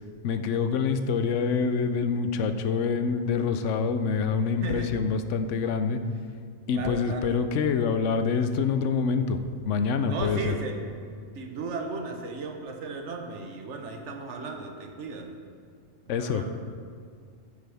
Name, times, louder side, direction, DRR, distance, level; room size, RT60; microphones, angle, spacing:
voice 1, 0.2-6.0 6.7-9.4 9.7-10.6 16.1-16.6, left 5 dB, 70° left, 9 dB, 0.9 m, -26 dB
voice 2, 4.6-4.9 6.7-7.3 10.1-10.7 11.3-15.4 16.2-16.5, right 4 dB, 60° right, 3 dB, 1.3 m, -35 dB
13.0 x 9.8 x 3.5 m, 2.2 s
omnidirectional pair, 1.4 m